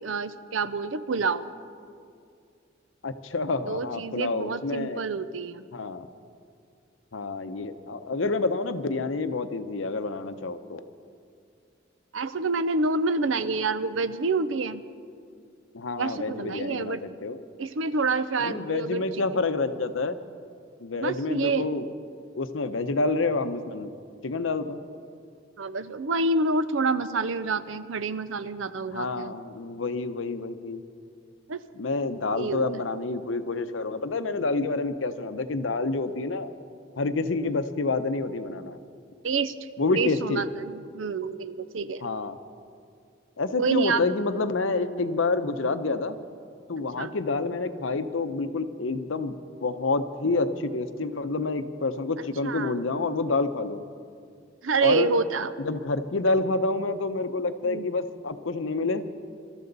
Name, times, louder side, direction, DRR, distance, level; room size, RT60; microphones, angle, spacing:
voice 1, 0.0-1.4 3.7-5.6 12.1-14.8 16.0-17.0 17.6-19.1 21.0-21.7 25.6-29.4 31.5-31.6 32.3-32.6 39.2-39.5 40.0-42.0 43.6-44.0 47.0-47.1 52.4-52.8 54.6-55.5 57.6-57.9, right 3 dB, 80° right, 13 dB, 0.6 m, -27 dB
voice 2, 3.0-5.1 5.7-6.1 7.1-10.8 15.7-17.4 18.4-20.2 20.8-21.9 22.3-23.9 24.2-24.8 28.9-30.8 31.7-36.5 37.0-38.8 39.8-40.5 42.0-42.3 43.4-46.2 46.7-53.8 54.8-55.1 55.6-59.0, left 3 dB, 80° left, 10 dB, 0.8 m, -28 dB
24.5 x 13.0 x 4.0 m, 2.3 s
head